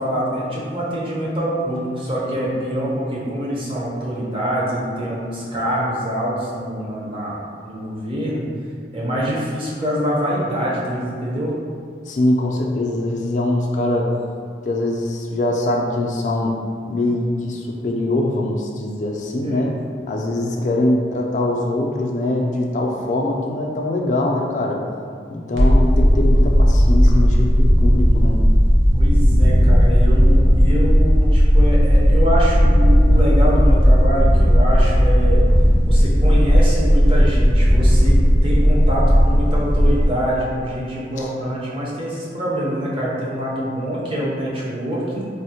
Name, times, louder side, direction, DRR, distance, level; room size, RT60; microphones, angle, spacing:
voice 1, 0.0-8.4 8.9-11.5 19.4-19.7 28.9-35.4 35.9-45.3, equal, 30° right, -6 dB, 0.6 m, -25 dB
voice 2, 12.1-14.1 14.6-16.6 16.9-19.7 20.1-24.8 25.3-28.4 41.1-41.3, left 1 dB, 40° left, 0 dB, 0.3 m, -22 dB
sound 1, 25.6-40.1, equal, 80° right, 0.6 m, -14 dB
3.4 x 2.0 x 2.7 m, 2.2 s
head